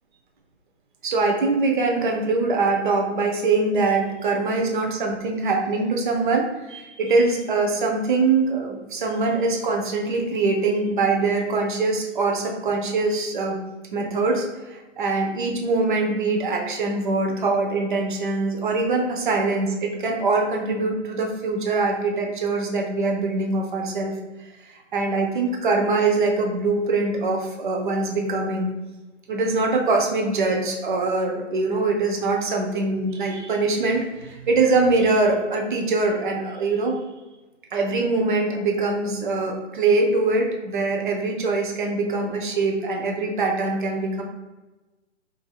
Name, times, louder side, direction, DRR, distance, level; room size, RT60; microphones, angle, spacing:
voice 1, 1.0-13.6 13.9-24.1 24.4-28.7 29.3-36.9 37.7-44.2, right 3 dB, 40° right, 1 dB, 0.5 m, -23 dB
4.2 x 2.6 x 2.2 m, 1.1 s
hypercardioid pair, 155°, 37 cm